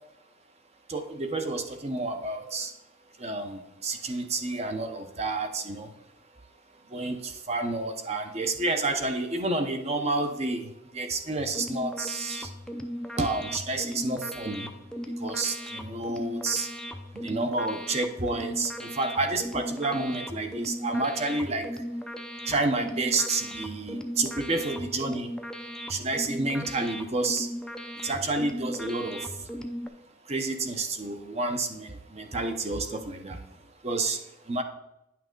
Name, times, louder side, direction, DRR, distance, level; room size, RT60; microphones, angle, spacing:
voice 1, 0.9-2.7 3.2-5.9 6.9-12.5 13.1-14.8 15.1-16.7 17.1-21.8 22.4-25.4 25.9-27.5 28.0-29.5 30.2-34.6, right 2 dB, 35° right, 6 dB, 0.8 m, -30 dB
sound 1, 11.4-29.9, equal, 5° left, 0.5 m, -37 dB
9.7 x 5.9 x 3.8 m, 0.91 s
head